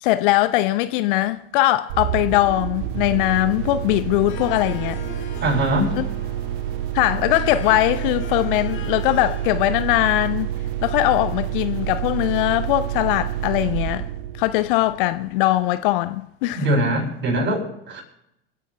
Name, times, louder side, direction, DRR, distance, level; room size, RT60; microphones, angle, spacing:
voice 1, 0.0-5.0 6.0-6.1 6.9-10.5 10.8-14.1 14.4-16.6, left 16 dB, 55° left, 0.7 m, -21 dB
sound 1, 1.9-15.4, right 12 dB, 55° right, 0.8 m, -28 dB
Harp, 4.3-9.7, left 7 dB, 40° left, 1.8 m, -39 dB
voice 2, 5.4-6.0 16.5-18.0, right 1 dB, 35° right, 7.2 m, -22 dB
29.5 x 10.0 x 3.3 m
figure-of-eight pair, 75°, 31 cm